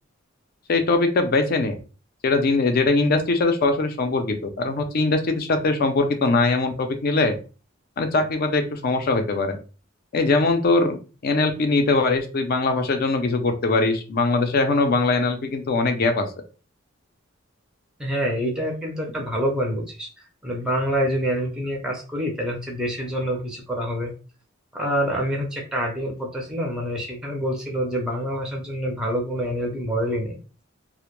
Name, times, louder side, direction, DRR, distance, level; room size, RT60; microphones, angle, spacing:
voice 1, 0.7-1.8 2.2-7.3 8.0-9.6 10.1-11.0 11.2-16.3, left 3 dB, 50° left, 6 dB, 0.4 m, -21 dB
voice 2, 18.0-20.1 20.4-24.1 24.7-30.4, equal, 5° right, -1 dB, 0.5 m, -26 dB
2.1 x 2.0 x 2.9 m, 0.34 s
head